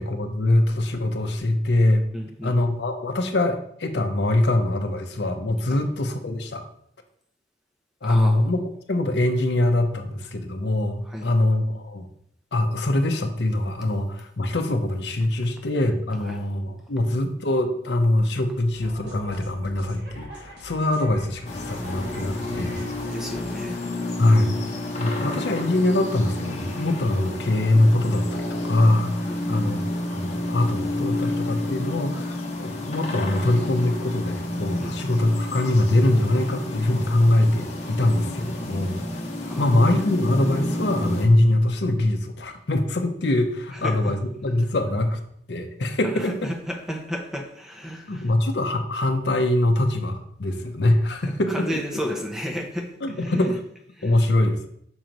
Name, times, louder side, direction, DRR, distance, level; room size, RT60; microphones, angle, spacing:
voice 1, 0.0-2.1 2.4-6.6 8.0-8.6 8.9-12.1 12.5-22.8 24.2-24.6 25.0-45.2 45.5-46.5 48.1-51.8 53.0-53.6 54.0-54.6, left 1 dB, 65° left, 5 dB, 0.7 m, -23 dB
voice 2, 2.1-2.5 5.7-5.8 8.0-8.4 11.0-11.3 16.3-16.4 23.0-23.8 29.3-29.7 34.8-34.9 39.5-39.8 43.7-44.1 46.0-48.3 51.2-52.9 53.2-53.5 53.9-54.1, equal, 5° right, 2 dB, 0.6 m, -33 dB
sound 1, 18.7-23.7, equal, 60° right, 1.4 m, -43 dB
sound 2, 21.4-41.3, left 1 dB, 40° left, 1.0 m, -31 dB
6.3 x 3.0 x 5.1 m, 0.68 s
head